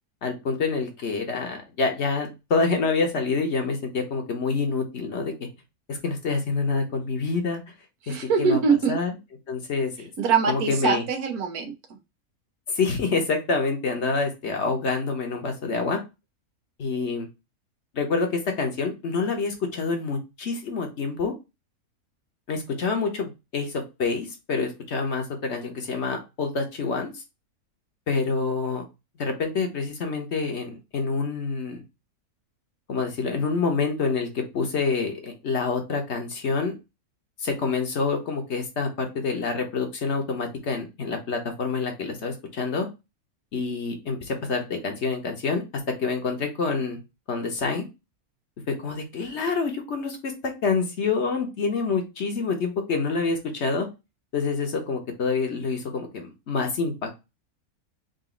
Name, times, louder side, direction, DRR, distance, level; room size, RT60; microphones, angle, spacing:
voice 1, 0.2-5.3 5.9-7.6 8.1-8.6 8.9-9.1 9.5-10.1 10.5-11.0 12.7-16.0 16.8-17.3 17.9-21.3 22.5-27.2 28.1-28.8 29.2-31.8 32.9-36.8 37.4-42.9 43.5-45.6 46.0-47.0 47.3-47.9 48.7-50.3 50.6-53.9 54.3-57.1, left 4 dB, 55° left, 4 dB, 1.1 m, -27 dB
voice 2, 8.0-9.0 10.2-11.7, right 5 dB, 90° right, 6 dB, 1.4 m, -23 dB
4.0 x 2.5 x 3.7 m, 0.25 s
omnidirectional pair, 1.5 m